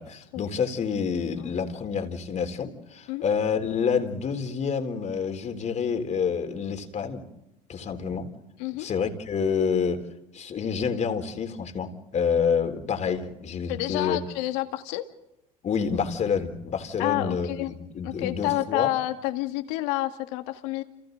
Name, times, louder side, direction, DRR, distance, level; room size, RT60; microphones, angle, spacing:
voice 1, 0.0-7.2 7.7-8.3 8.8-10.0 10.3-14.2 15.6-18.9, left 6 dB, 40° left, 6 dB, 3.7 m, -28 dB
voice 2, 13.7-15.1 17.0-17.7 18.0-20.8, left 16 dB, 70° left, 7 dB, 2.2 m, -29 dB
30.0 x 27.5 x 4.0 m, 0.89 s
hypercardioid pair, 90°, 19 cm